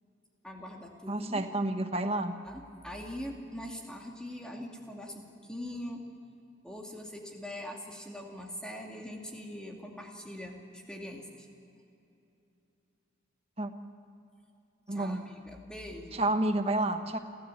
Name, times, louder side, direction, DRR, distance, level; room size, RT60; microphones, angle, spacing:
voice 1, 0.4-1.4 2.4-6.0 6.6-11.5 14.9-16.2, left 1 dB, 5° left, 0 dB, 2.3 m, -42 dB
voice 2, 1.1-2.3 13.6-13.7 14.9-15.2 16.1-17.2, right 2 dB, 30° right, 7 dB, 1.2 m, -29 dB
29.5 x 13.5 x 8.3 m, 2.7 s
head